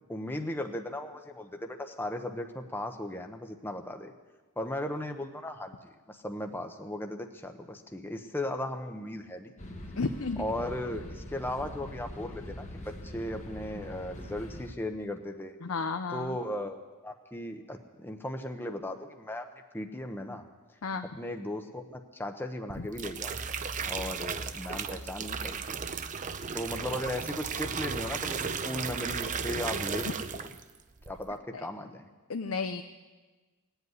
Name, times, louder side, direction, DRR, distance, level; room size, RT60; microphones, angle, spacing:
voice 1, 0.1-4.1 4.6-9.5 10.4-15.5 16.1-19.5 19.7-20.4 21.2-23.4 23.8-25.8 26.5-30.5 31.1-32.1, left 1 dB, 10° left, 5 dB, 0.8 m, -37 dB
sound 1, 9.6-14.7, left 1 dB, 35° left, 1.3 m, -43 dB
voice 2, 10.0-10.4 15.6-16.4 20.8-21.1 31.5-31.7 32.3-32.8, left 4 dB, 65° left, 8 dB, 0.6 m, -32 dB
sound 2, 22.7-30.7 31.0-31.4, right 6 dB, 35° right, 0.6 m, -35 dB
18.5 x 8.1 x 9.5 m, 1.3 s
head